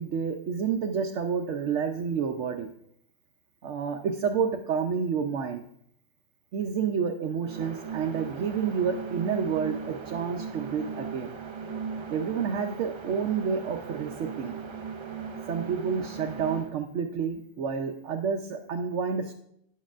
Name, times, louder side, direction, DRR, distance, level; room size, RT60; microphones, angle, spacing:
voice 1, 0.0-2.7 3.6-5.6 6.5-11.3 12.1-14.6 15.5-19.3, right 6 dB, 80° right, 3 dB, 1.0 m, -29 dB
sound 1, 7.4-16.7, right 6 dB, 40° right, 0.4 m, -38 dB
10.0 x 7.3 x 2.5 m, 0.72 s
omnidirectional pair, 1.2 m